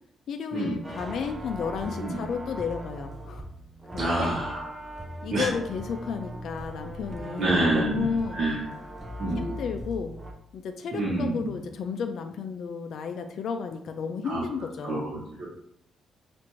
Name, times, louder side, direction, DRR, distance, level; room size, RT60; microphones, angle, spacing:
voice 1, 0.3-3.4 3.9-4.3 5.2-8.4 9.3-10.2 10.5-15.1, left 6 dB, 60° left, 6 dB, 0.4 m, -33 dB
sound 1, 0.8-10.3, equal, 15° right, 0.5 m, -39 dB
voice 2, 4.0-4.9 5.3-5.5 7.4-8.6 9.2-9.5 10.9-11.5 14.2-14.4 14.8-15.5, right 1 dB, 50° right, -6 dB, 1.0 m, -27 dB
5.7 x 2.5 x 3.0 m, 0.70 s
cardioid pair, 140°, 0 cm